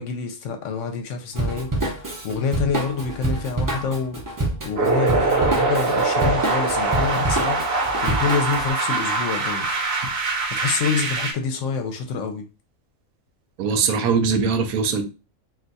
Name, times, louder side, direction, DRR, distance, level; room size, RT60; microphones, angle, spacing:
voice 1, 0.0-4.2 4.6-7.6 8.0-9.9 10.6-12.4, left 5 dB, 70° left, 0.9 m, -27 dB
Drum kit / Drum, 1.3-8.7, right 2 dB, 25° right, 0.5 m, -27 dB
sound 1, 4.8-11.3, right 3 dB, 55° right, 0.9 m, -23 dB
voice 2, 13.6-15.0, right 5 dB, 90° right, 1.1 m, -21 dB
2.5 x 2.3 x 3.9 m
omnidirectional pair, 1.4 m